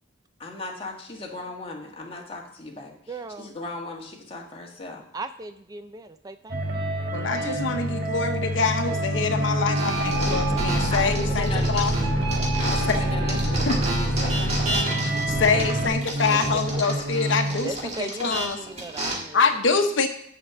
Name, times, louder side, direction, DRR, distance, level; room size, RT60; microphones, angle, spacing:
voice 1, 0.4-5.0 10.9-12.2 12.6-14.8, left 2 dB, 30° left, 0 dB, 1.5 m, -37 dB
voice 2, 3.1-3.5 5.1-6.6 10.2-10.6 15.5-15.6 16.9-17.0 17.6-19.5, right 3 dB, 20° right, 10 dB, 0.3 m, -37 dB
sound 1, 6.5-15.9, right 1 dB, 55° right, 1.5 m, -29 dB
voice 3, 7.1-11.9 12.9-13.0 13.7-13.8 15.0-15.1 15.4-17.7 18.0-18.6 19.3-20.1, left 5 dB, 75° left, 6 dB, 0.9 m, -25 dB
sound 2, 9.1-17.7, equal, 75° right, 2.1 m, -27 dB
sound 3, 9.7-13.0 13.3-19.1, right 2 dB, 35° right, 2.1 m, -32 dB
6.5 x 6.1 x 6.8 m, 0.68 s
head